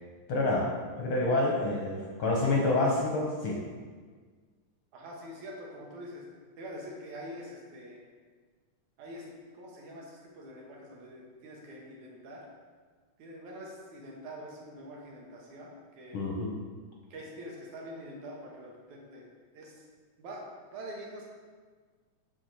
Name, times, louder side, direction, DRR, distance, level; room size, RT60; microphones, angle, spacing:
voice 1, 0.3-0.7 1.0-3.6 16.1-16.5, left 2 dB, 60° left, -1 dB, 1.5 m, -27 dB
voice 2, 4.9-6.2 6.6-8.0 9.0-12.4 13.2-15.7 16.0-16.2 17.1-19.3 19.5-19.8 20.2-21.2, equal, 85° right, -2 dB, 2.8 m, -45 dB
7.3 x 4.7 x 6.2 m, 1.5 s
omnidirectional pair, 3.3 m